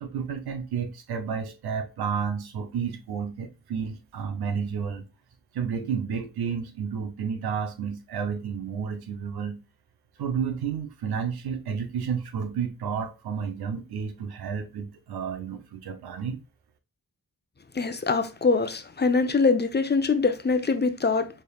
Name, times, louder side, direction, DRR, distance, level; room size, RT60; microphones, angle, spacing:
voice 1, 0.0-5.1 5.5-9.6 10.2-16.4, right 6 dB, 85° right, 0.7 m, -31 dB
voice 2, 17.7-21.3, left 4 dB, 25° left, 0.8 m, -23 dB
4.4 x 3.4 x 2.3 m
supercardioid pair, 40°, 37 cm